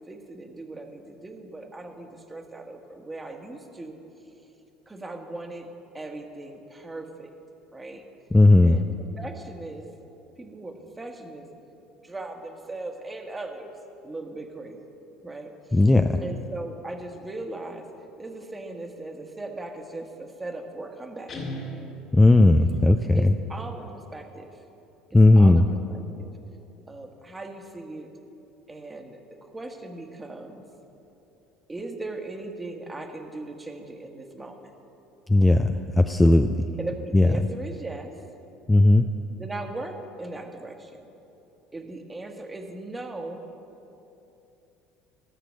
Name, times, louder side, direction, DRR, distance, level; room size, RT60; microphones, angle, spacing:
voice 1, 0.1-4.0 4.9-5.7 5.9-7.3 7.7-8.0 8.6-8.9 9.2-9.9 10.4-11.5 12.0-13.7 14.0-14.8 15.2-15.9 16.2-17.9 18.2-21.3 23.1-24.6 25.4-25.6 25.9-26.3 26.9-28.1 28.7-30.6 31.7-34.7 36.8-38.1 39.4-41.1 41.7-43.4, right 2 dB, 15° right, 4 dB, 1.4 m, -38 dB
voice 2, 8.3-8.8 15.7-16.2 22.1-23.3 25.1-25.6 35.3-36.5 37.1-37.3 38.7-39.1, left 2 dB, 15° left, 7 dB, 0.5 m, -16 dB
Guitar, 21.3-23.0, equal, 45° left, 2.7 m, -37 dB
14.0 x 6.7 x 6.5 m, 2.9 s
hypercardioid pair, 75°, 0 cm